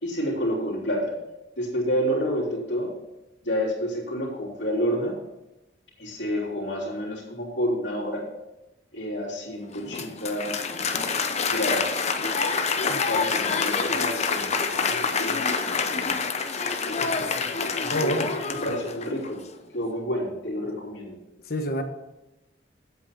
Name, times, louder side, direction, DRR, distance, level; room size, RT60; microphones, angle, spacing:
voice 1, 0.0-1.1 1.6-2.9 3.4-5.1 6.0-8.2 8.9-10.6 11.5-12.0 12.8-16.2 17.8-18.1 18.5-19.4 19.7-21.2, equal, 70° left, -3 dB, 3.4 m, -29 dB
Applause, 9.7-19.3, left 5 dB, 35° left, 0.7 m, -27 dB
voice 2, 17.0-17.4 17.9-18.3 18.7-18.8 21.5-21.8, equal, 55° left, 6 dB, 1.2 m, -28 dB
8.2 x 8.1 x 5.8 m, 0.98 s
head